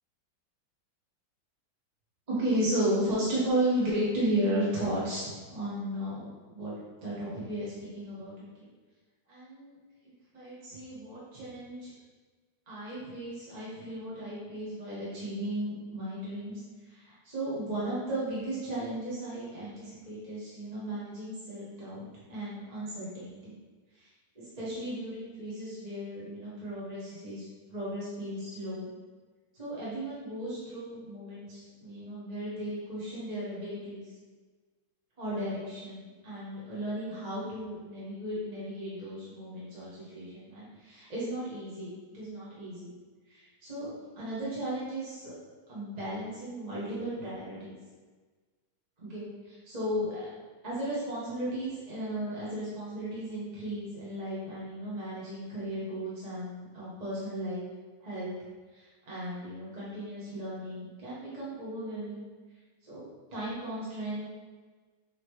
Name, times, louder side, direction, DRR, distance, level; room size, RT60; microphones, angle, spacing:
voice 1, 2.3-6.7 7.0-8.7 9.3-9.8 10.3-11.9 12.7-23.5 23.9-24.1 24.3-28.9 29.5-34.1 35.2-42.9 43.3-45.3 45.7-47.7 49.0-50.3 50.6-57.7 58.0-58.3 58.7-62.2 62.8-63.0 63.3-64.3, right 1 dB, 20° right, -9 dB, 1.6 m, -35 dB
7.6 x 4.2 x 3.3 m, 1.4 s
omnidirectional pair, 2.3 m